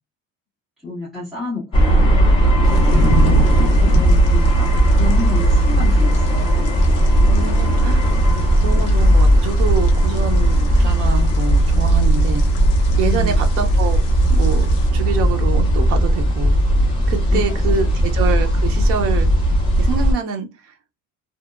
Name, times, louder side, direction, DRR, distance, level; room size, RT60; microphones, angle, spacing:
voice 1, 0.8-2.3 3.6-6.5 13.0-13.5 17.3-18.0, left 4 dB, ahead, 1.1 m, -30 dB
sound 1, 1.7-20.1, right 1 dB, 15° left, 0.5 m, -16 dB
sound 2, 2.6-14.9, left 5 dB, 75° left, 0.8 m, -32 dB
voice 2, 7.3-8.1 8.6-12.4 13.0-14.0 14.3-14.7 14.9-16.6 17.1-19.3 19.8-20.7, right 6 dB, 45° right, 0.5 m, -26 dB
2.7 x 2.1 x 2.3 m
cardioid pair, 180°, 33 cm